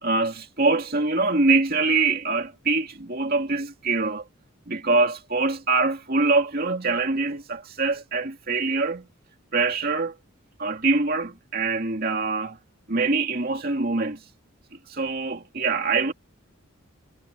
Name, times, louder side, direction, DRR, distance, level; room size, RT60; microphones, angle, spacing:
voice 1, 0.0-4.2 4.7-9.1 9.5-10.1 10.6-12.6 12.9-14.2 14.9-16.1, right 3 dB, 45° right, 2.3 m, -24 dB
head